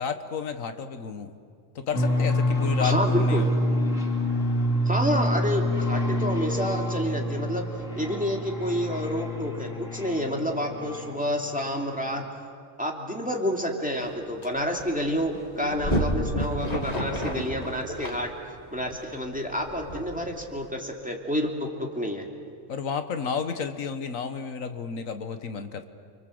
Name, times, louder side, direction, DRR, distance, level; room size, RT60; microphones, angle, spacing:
voice 1, 0.0-1.3 1.7-3.5 22.7-25.9, left 6 dB, 90° left, 8 dB, 1.7 m, -31 dB
sound 1, 1.9-11.5, left 1 dB, 75° left, 3.9 m, -27 dB
voice 2, 2.8-3.5 4.8-7.7 8.0-12.2 12.8-18.3 18.7-22.3, equal, 5° right, 1 dB, 2.7 m, -29 dB
sound 2, 14.0-14.1 14.4-20.6, equal, 30° left, 2.9 m, -31 dB
29.0 x 25.5 x 7.8 m, 2.2 s
omnidirectional pair, 1.3 m